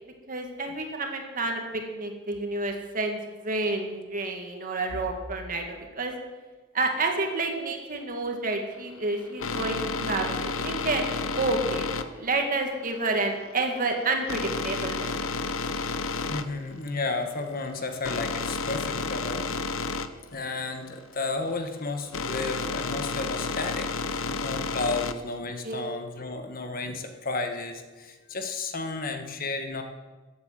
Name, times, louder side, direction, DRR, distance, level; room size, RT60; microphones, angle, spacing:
voice 1, 0.3-1.6 1.9-6.1 6.7-10.3 10.6-11.0 11.3-15.1 25.6-25.9, right 2 dB, 45° right, 3 dB, 2.1 m, -29 dB
sound 1, 8.7-25.4, left 4 dB, 90° left, 0.8 m, -32 dB
voice 2, 16.3-19.6 20.3-29.8, left 3 dB, 45° left, 6 dB, 1.3 m, -33 dB
14.0 x 8.6 x 7.5 m, 1.3 s
head